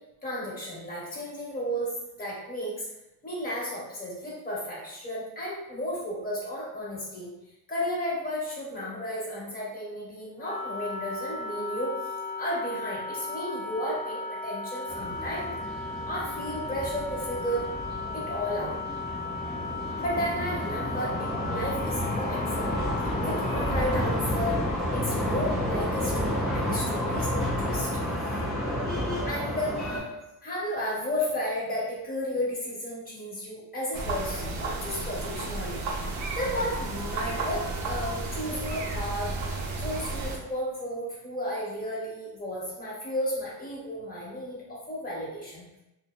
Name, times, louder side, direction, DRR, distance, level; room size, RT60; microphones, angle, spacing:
voice 1, 0.2-1.9 2.2-2.9 3.2-7.3 7.7-11.9 12.4-17.7 18.1-18.8 20.0-22.8 23.2-24.6 24.9-28.1 29.2-30.1 30.4-45.6, equal, 20° left, -6 dB, 0.9 m, -33 dB
Wind instrument woodwind instrument, 10.4-24.5, left 3 dB, 50° left, 0.9 m, -36 dB
sound 1, 14.9-30.0, left 1 dB, ahead, 0.6 m, -31 dB
sound 2, 33.9-40.4, right 3 dB, 45° right, 0.5 m, -33 dB
2.7 x 2.0 x 2.3 m, 0.92 s
cardioid pair, 105°, 40 cm